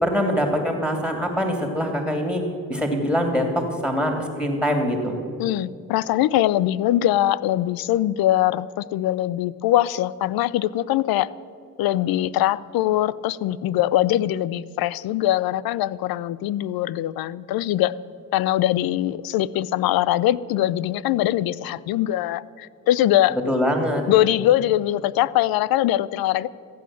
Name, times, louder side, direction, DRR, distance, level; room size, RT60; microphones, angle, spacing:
voice 1, 0.0-2.4 2.7-5.1 23.5-24.0, equal, 5° left, 3 dB, 2.5 m, -23 dB
voice 2, 5.4-11.3 11.8-17.9 18.3-23.4 24.1-26.5, left 13 dB, 70° left, 19 dB, 0.5 m, -22 dB
14.5 x 8.6 x 7.4 m, 2.4 s
supercardioid pair, 60°, 37 cm